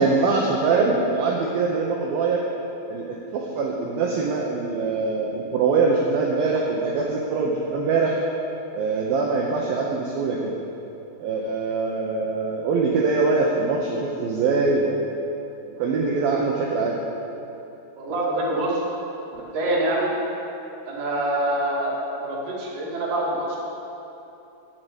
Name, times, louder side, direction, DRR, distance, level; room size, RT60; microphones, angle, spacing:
voice 1, 0.0-2.4 2.9-8.2 8.7-10.6 11.2-15.0 15.8-17.0, right 4 dB, 80° right, -1 dB, 2.1 m, -23 dB
voice 2, 18.0-18.8 19.3-20.1 20.9-23.6, right 1 dB, 50° right, -5 dB, 3.3 m, -25 dB
10.5 x 7.7 x 8.1 m, 2.9 s
omnidirectional pair, 5.5 m